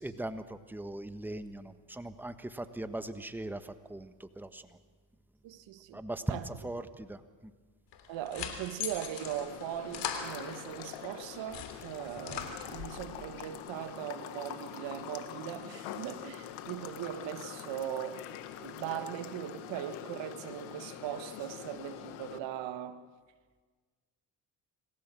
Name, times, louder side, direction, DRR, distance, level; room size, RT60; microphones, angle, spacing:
voice 1, 0.0-4.6 5.9-7.5, right 1 dB, 5° right, 1.3 m, -40 dB
voice 2, 5.4-6.0 6.3-6.5 8.1-18.2 18.6-23.0, right 11 dB, 70° right, 1.5 m, -39 dB
sound 1, 7.9-11.0 11.3-13.1, left 7 dB, 65° left, 3.2 m, -40 dB
sound 2, 9.2-22.4, left 11 dB, 85° left, 1.6 m, -45 dB
26.5 x 15.0 x 7.6 m
supercardioid pair, 70°, 46 cm